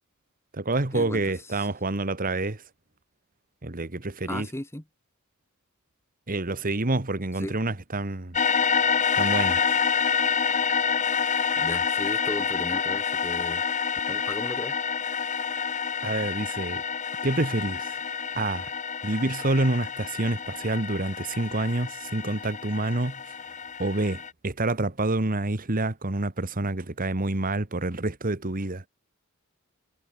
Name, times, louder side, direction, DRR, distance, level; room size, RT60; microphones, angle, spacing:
voice 1, 0.5-2.6 3.6-4.5 6.3-8.4 9.1-9.8 16.0-16.8 17.2-18.0 18.3-18.7 19.0-23.4 23.8-28.8, right 2 dB, 40° right, 1.5 m, -28 dB
voice 2, 4.2-4.8 7.4-7.5 11.6-13.6 14.1-14.8, left 1 dB, 10° left, 1.4 m, -35 dB
sound 1, 8.3-24.3, left 6 dB, 35° left, 1.2 m, -28 dB
head